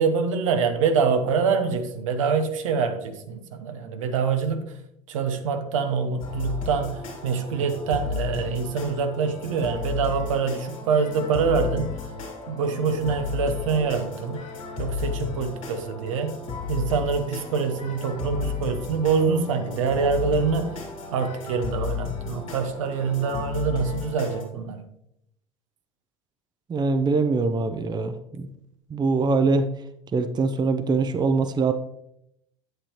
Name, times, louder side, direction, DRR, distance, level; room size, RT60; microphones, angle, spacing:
voice 1, 0.0-4.8 5.1-11.9 12.5-14.5 14.8-16.4 16.7-20.8 21.1-24.9, right 5 dB, 75° right, 7 dB, 0.8 m, -25 dB
sound 1, 6.2-24.4, left 6 dB, 80° left, 2.2 m, -33 dB
voice 2, 26.7-28.5 28.9-29.7 30.1-31.7, right 4 dB, 25° right, 10 dB, 0.6 m, -23 dB
8.4 x 8.0 x 3.0 m, 0.77 s
figure-of-eight pair, 65°, 17 cm